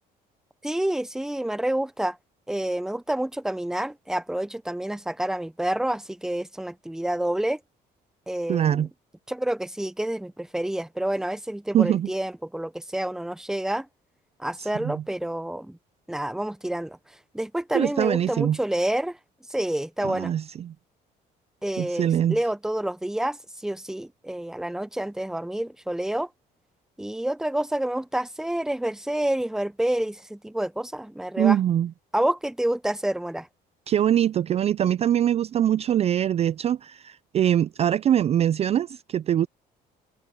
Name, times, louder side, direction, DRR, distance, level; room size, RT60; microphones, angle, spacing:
voice 1, 0.6-2.2 2.5-7.6 8.3-8.9 9.3-13.9 14.4-15.8 16.1-17.0 17.3-19.2 19.5-20.3 21.6-26.3 27.0-31.6 32.1-33.5, right 1 dB, 5° right, 0.7 m, -28 dB
voice 2, 8.5-8.9 11.7-12.1 14.6-15.0 17.7-18.6 20.0-20.7 21.8-22.4 31.4-31.9 33.9-39.5, right 10 dB, 40° right, 0.3 m, -23 dB
cardioid pair, 110°, 17 cm